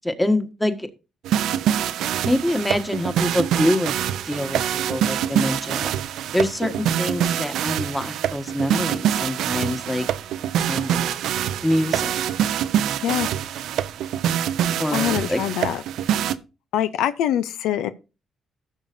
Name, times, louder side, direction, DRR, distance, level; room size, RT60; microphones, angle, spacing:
voice 1, 0.0-0.9 2.2-3.9 4.2-5.9 6.3-10.0 10.7-11.1 11.6-12.1 14.8-15.4, left 1 dB, 10° left, 1.4 m, -25 dB
sound 1, 1.2-16.4, right 10 dB, 80° right, 0.5 m, -25 dB
voice 2, 14.9-15.8 16.7-17.9, left 10 dB, 90° left, 0.5 m, -24 dB
15.5 x 6.4 x 2.6 m
cardioid pair, 90°, 0 cm